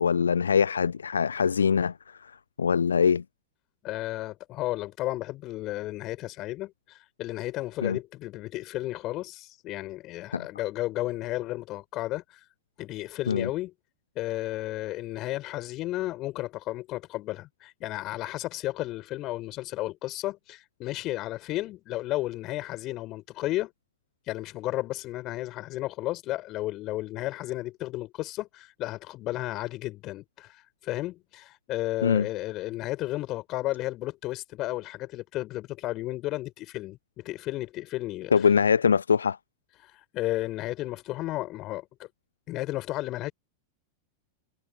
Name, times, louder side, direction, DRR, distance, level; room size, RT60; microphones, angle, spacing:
voice 1, 0.0-1.9 2.6-3.2 7.8-8.0 10.3-10.4 13.3-13.5 32.0-32.3 38.3-39.4, left 6 dB, 70° left, 0.8 m, -23 dB
voice 2, 3.8-12.4 12.8-13.7 14.2-23.7 24.3-38.5 39.8-42.1 42.5-43.3, left 17 dB, 35° left, 5.3 m, -33 dB
figure-of-eight pair, 90°, 0 cm